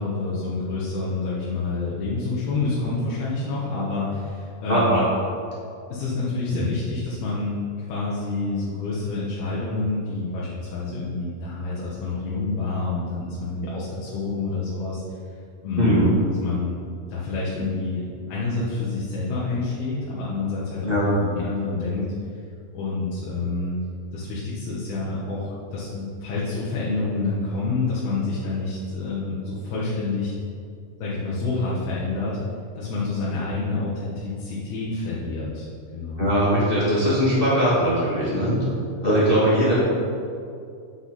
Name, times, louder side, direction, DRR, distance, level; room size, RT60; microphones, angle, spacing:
voice 1, 0.0-5.0 5.9-7.6 7.9-15.0 15.6-16.7 17.1-22.1 22.7-23.8 24.1-30.3 31.0-32.4 32.8-35.7 35.9-36.3, left 3 dB, 75° left, -7 dB, 3.2 m, -28 dB
voice 2, 4.7-5.0 6.5-6.6 15.8-16.1 20.8-21.1 36.2-38.6 39.0-39.7, equal, 20° left, -9 dB, 1.4 m, -20 dB
10.5 x 6.8 x 4.2 m, 2.4 s
omnidirectional pair, 4.6 m